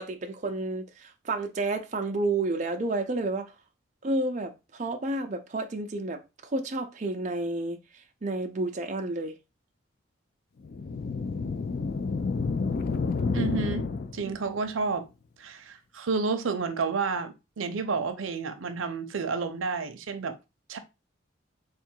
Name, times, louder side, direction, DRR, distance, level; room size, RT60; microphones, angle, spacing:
voice 1, 0.0-3.5 4.0-9.3 14.2-14.4, right 2 dB, 40° right, 0.5 m, -31 dB
sound 1, 10.6-14.5, left 4 dB, 50° left, 0.4 m, -29 dB
voice 2, 13.3-13.9 14.1-15.1 15.4-20.4 20.7-20.8, right 4 dB, 90° right, 0.6 m, -30 dB
3.6 x 2.4 x 4.5 m
head